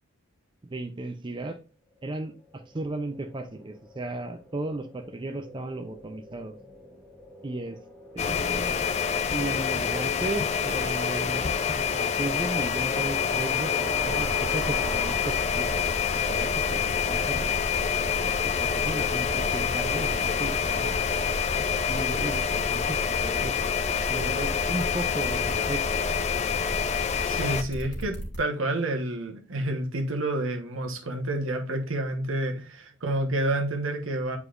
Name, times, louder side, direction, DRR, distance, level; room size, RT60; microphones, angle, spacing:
voice 1, 0.6-1.6 2.0-6.6 7.4-7.8 8.1-8.8 9.3-16.0 16.3-17.5 18.2-21.0 21.7-23.7 24.1-26.1, right 2 dB, 25° right, 0.5 m, -35 dB
sound 1, 2.3-17.4, left 1 dB, 5° right, 0.9 m, -44 dB
sound 2, 8.2-27.6, left 7 dB, 35° left, 0.4 m, -27 dB
sound 3, 14.1-28.4, equal, 60° left, 2.5 m, -36 dB
voice 2, 27.2-34.4, right 1 dB, 75° right, 1.2 m, -29 dB
8.3 x 4.9 x 2.5 m
head